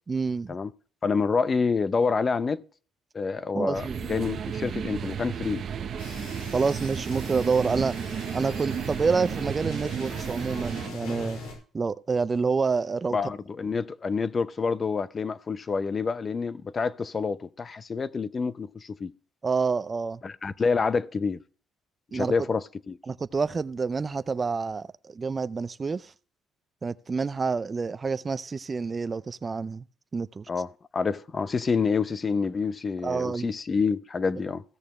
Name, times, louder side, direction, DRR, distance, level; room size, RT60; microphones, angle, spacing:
voice 1, 0.1-0.6 3.5-4.0 6.5-8.0 8.3-11.4 11.7-13.2 19.4-20.2 22.1-22.3 23.1-26.1 26.8-29.8 30.1-30.5 33.0-33.5, right 4 dB, 30° right, 0.4 m, -28 dB
voice 2, 1.0-2.6 3.1-5.6 13.1-19.1 20.2-21.4 22.1-23.0 30.5-30.7 30.9-34.6, left 5 dB, 30° left, 0.6 m, -27 dB
sound 1, 3.7-10.9, right 7 dB, 55° right, 0.9 m, -33 dB
sound 2, 6.0-11.5, left 3 dB, 90° left, 4.7 m, -42 dB
16.0 x 6.6 x 3.1 m
cardioid pair, 105°, 0 cm